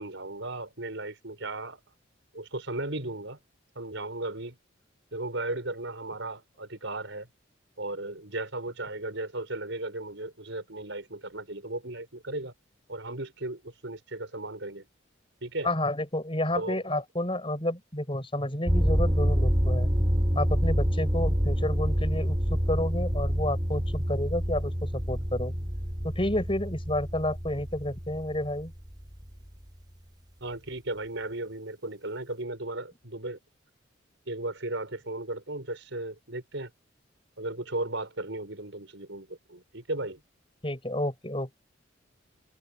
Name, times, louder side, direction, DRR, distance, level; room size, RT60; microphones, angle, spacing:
voice 1, 0.0-1.8 2.3-3.4 3.8-4.6 5.1-7.3 7.8-12.5 12.9-14.8 15.4-15.7 16.5-16.8 30.4-33.4 34.3-36.7 37.4-40.2, right 2 dB, 70° right, 5.5 m, -35 dB
voice 2, 15.6-19.9 20.3-25.5 26.0-28.7 40.6-41.5, left 1 dB, 25° left, 8.0 m, -30 dB
sound 1, 18.6-29.5, equal, 20° right, 3.0 m, -27 dB
head